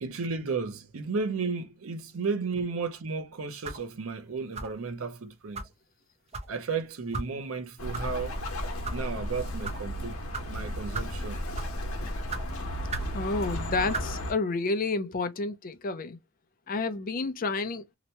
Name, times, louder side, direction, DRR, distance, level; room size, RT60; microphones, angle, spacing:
voice 1, 0.0-5.6 6.5-8.4 8.9-10.2 10.5-11.4, right 4 dB, 80° right, 0.6 m, -33 dB
sound 1, 3.6-3.9 4.5-4.8 5.5-5.7 6.3-6.5 7.1-7.3 7.9-8.1 8.7-9.0 9.6-9.8 10.3-10.5 10.9-11.2 11.5-11.8 12.3-12.4 12.9-13.1 13.9-14.1, right 3 dB, 30° right, 0.6 m, -35 dB
Bird, 7.8-14.3, equal, 80° left, 0.9 m, -34 dB
voice 2, 13.1-16.2 16.7-17.9, left 3 dB, 40° left, 0.5 m, -30 dB
2.9 x 2.2 x 2.7 m
head